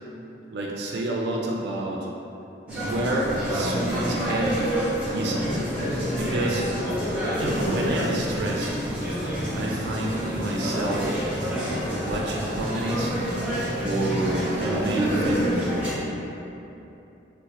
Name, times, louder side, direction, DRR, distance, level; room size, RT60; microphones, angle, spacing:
voice 1, 0.5-2.1 2.7-4.6 5.1-5.5 6.1-6.6 7.4-8.7 9.5-11.1 11.9-13.1 13.8-15.7, right 1 dB, 65° right, -2 dB, 0.3 m, -29 dB
sound 1, 2.7-16.0, equal, 5° right, 0.8 m, -27 dB
3.9 x 2.1 x 2.8 m, 2.9 s
head